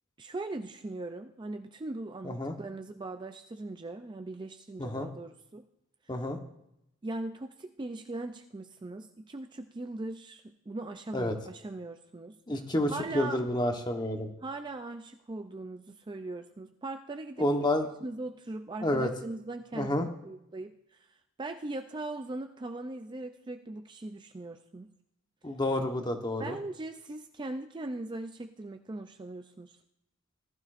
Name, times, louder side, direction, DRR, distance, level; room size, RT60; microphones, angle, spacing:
voice 1, 0.2-5.7 7.0-12.4 12.9-13.5 14.4-17.5 18.0-21.1 21.4-24.9 26.4-29.8, right 2 dB, 20° right, 7 dB, 0.4 m, -40 dB
voice 2, 2.2-2.5 4.8-5.1 6.1-6.4 11.1-11.3 12.5-14.3 17.4-17.9 18.8-19.1 19.7-20.1 25.4-26.6, left 1 dB, 20° left, 4 dB, 1.1 m, -29 dB
19.0 x 12.0 x 2.5 m, 0.83 s
head